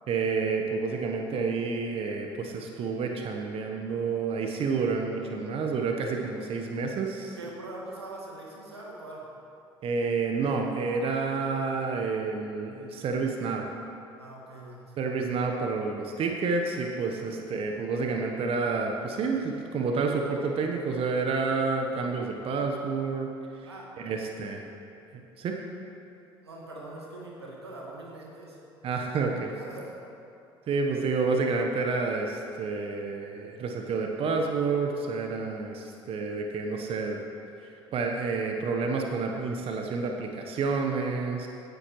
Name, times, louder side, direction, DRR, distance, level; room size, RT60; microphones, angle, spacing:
voice 1, 0.1-7.4 9.8-13.7 15.0-23.7 24.0-24.6 25.1-25.6 28.8-29.5 30.7-37.2 37.9-41.5, right 4 dB, 45° right, 2 dB, 1.1 m, -29 dB
voice 2, 7.4-9.3 14.2-15.0 17.2-17.3 23.7-24.2 26.4-28.6 29.5-30.0, right 2 dB, 85° right, -2 dB, 1.6 m, -43 dB
16.0 x 10.0 x 3.1 m, 2.7 s
figure-of-eight pair, 60°, 13 cm